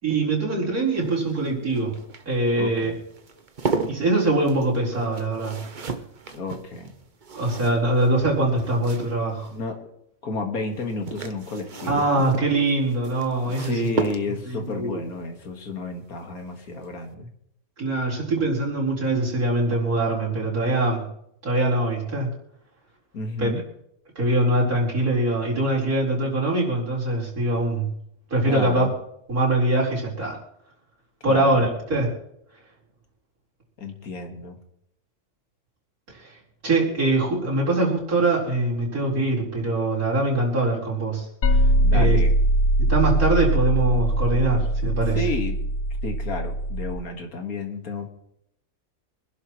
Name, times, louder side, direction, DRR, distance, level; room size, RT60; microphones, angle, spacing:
voice 1, 0.0-2.0 2.3-2.9 3.9-5.6 7.3-9.5 11.9-13.9 14.5-15.0 17.8-21.1 21.4-22.3 23.4-23.5 24.1-27.9 28.3-28.9 29.3-30.4 31.2-32.1 36.1-36.3 36.6-41.2 41.9-42.2 42.8-45.2, right 2 dB, 70° right, -5 dB, 4.9 m, -23 dB
sound 1, 0.8-9.6 10.7-14.7 16.3-16.6 16.9-17.0, right 4 dB, 35° right, 0.9 m, -35 dB
voice 2, 2.6-3.0 6.3-6.9 9.5-9.9 10.2-12.0 13.6-17.3 23.1-23.6 28.5-28.9 31.3-31.7 33.8-34.6 41.8-42.4 45.1-45.6 46.0-48.1, left 2 dB, 70° left, 4 dB, 2.3 m, -31 dB
sound 2, 41.4-47.0, right 1 dB, 50° left, 1.1 m, -21 dB
25.0 x 11.5 x 3.1 m, 0.74 s
omnidirectional pair, 1.6 m